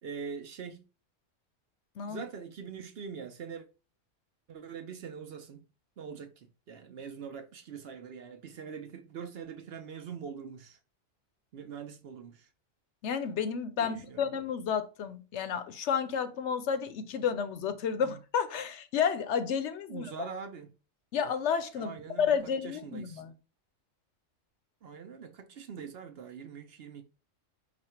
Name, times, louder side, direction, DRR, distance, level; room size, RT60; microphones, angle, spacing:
voice 1, 0.0-0.9 2.1-3.7 4.5-5.6 6.0-10.8 11.5-12.5 13.8-14.4 18.0-18.2 19.9-20.7 21.8-23.2 24.8-27.0, right 6 dB, 60° right, 0.8 m, -43 dB
voice 2, 13.0-20.3 21.1-21.9 22.2-23.3, left 7 dB, 70° left, 0.9 m, -31 dB
5.1 x 2.3 x 4.2 m
omnidirectional pair, 1.3 m